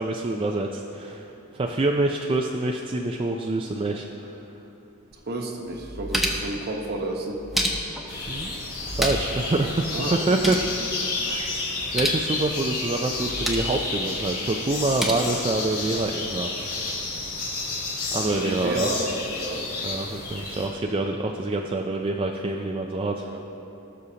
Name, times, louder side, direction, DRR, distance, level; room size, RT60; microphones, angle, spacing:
voice 1, 0.0-4.5 8.3-8.6 9.0-10.6 11.2-11.6 11.9-17.0 18.1-18.9 19.8-23.2, right 2 dB, 25° right, 2 dB, 0.3 m, -26 dB
sound 1, 5.1-5.2 5.7-6.6 7.3-8.1 8.8-9.4 9.7-9.8 10.1-10.7 11.8-12.2 13.1-13.7 14.7-15.1, equal, ahead, 0.8 m, -29 dB
voice 2, 5.1-7.4 9.9-10.6 18.3-19.6 23.2-23.4, right 2 dB, 45° right, 2 dB, 1.0 m, -31 dB
sound 2, 8.1-20.7, left 3 dB, 85° left, 2.4 m, -31 dB
18.5 x 6.5 x 2.8 m, 2.9 s
head